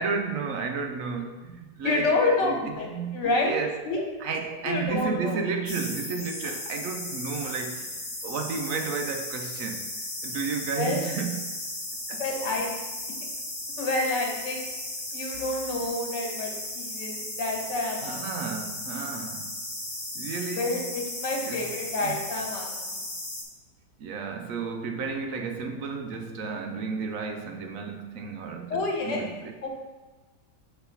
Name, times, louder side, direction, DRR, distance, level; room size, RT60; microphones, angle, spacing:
voice 1, 0.0-3.8 4.2-7.9 8.2-9.9 10.2-11.5 12.1-12.2 18.0-19.7 20.1-20.9 21.4-21.7 22.0-22.2 24.0-29.5, right 5 dB, 65° right, 0.8 m, -32 dB
voice 2, 1.8-3.6 3.8-4.0 4.6-5.4 10.8-11.0 12.2-12.7 13.8-14.6 15.1-18.5 20.6-23.0 28.7-29.3 29.6-29.7, left 2 dB, 75° left, 1.8 m, -28 dB
sound 1, 5.7-23.4, left 1 dB, 15° left, 1.0 m, -36 dB
5.5 x 4.1 x 5.6 m
omnidirectional pair, 1.9 m